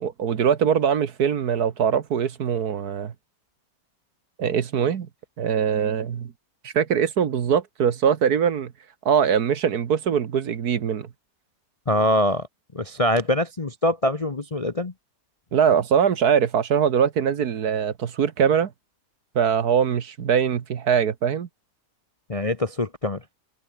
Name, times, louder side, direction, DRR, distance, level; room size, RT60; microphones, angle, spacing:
voice 1, 0.0-3.1 4.4-5.1 5.4-6.3 6.6-8.7 9.1-11.1 15.5-18.7 19.4-21.5, right 7 dB, 60° right, 1.7 m, -22 dB
voice 2, 11.9-12.4 12.7-14.9 22.3-23.2, left 1 dB, 25° left, 0.8 m, -23 dB
omnidirectional pair, 1.9 m